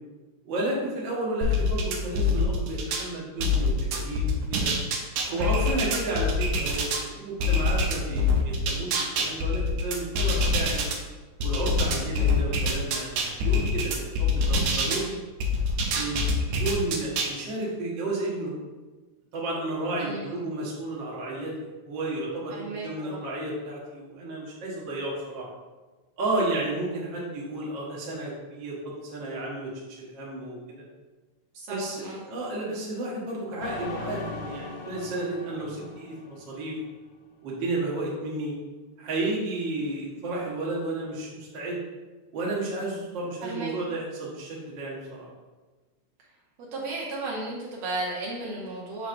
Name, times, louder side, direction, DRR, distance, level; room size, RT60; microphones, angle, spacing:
voice 1, 0.4-4.2 4.5-4.7 5.3-10.9 11.4-15.2 15.9-16.2 16.6-18.5 19.3-21.5 21.8-25.5 26.2-30.6 31.7-36.8 37.4-38.6 39.0-41.8 42.3-45.3, right 2 dB, 50° right, -5 dB, 1.7 m, -32 dB
sound 1, 1.4-3.1 3.4-7.0 7.4-11.0 11.4-15.0 15.4-17.3, left 2 dB, 90° right, 2.2 m, -25 dB
voice 2, 20.0-20.5 22.5-23.2 31.5-32.2 43.4-43.7 46.7-49.1, right 2 dB, 70° right, -4 dB, 2.0 m, -35 dB
sound 2, 33.6-37.0, left 4 dB, 85° left, 2.1 m, -39 dB
6.3 x 6.0 x 2.6 m, 1.3 s
omnidirectional pair, 3.4 m